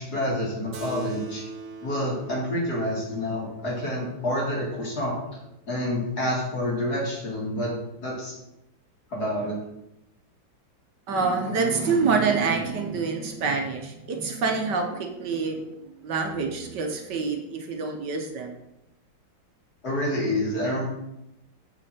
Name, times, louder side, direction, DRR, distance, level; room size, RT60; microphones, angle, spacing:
voice 1, 0.0-1.4 1.8-5.2 5.7-7.7 8.0-8.3 9.1-9.6 19.8-20.8, left 1 dB, 50° left, -3 dB, 2.8 m, -28 dB
Keyboard (musical), 0.7-5.6, right 2 dB, 50° right, 1.3 m, -42 dB
voice 2, 11.1-18.5, right 4 dB, 65° right, 3 dB, 1.4 m, -26 dB
7.6 x 6.3 x 4.3 m, 0.89 s
omnidirectional pair, 2.2 m